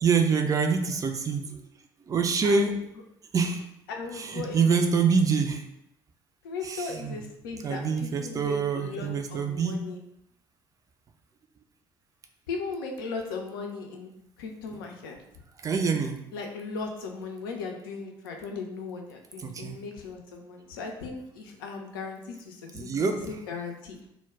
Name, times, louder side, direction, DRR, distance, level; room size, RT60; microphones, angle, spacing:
voice 1, 0.0-1.6 2.1-2.8 3.3-3.7 4.1-5.6 6.6-7.2 7.6-9.8 15.6-16.2 19.4-19.8 22.7-23.3, right 5 dB, 30° right, 5 dB, 0.4 m, -26 dB
voice 2, 2.4-2.8 3.9-4.9 6.4-10.0 12.5-14.1 14.4-15.2 16.3-24.0, left 4 dB, 70° left, 2 dB, 0.4 m, -37 dB
2.1 x 2.0 x 3.5 m, 0.79 s
figure-of-eight pair, 50°, 12 cm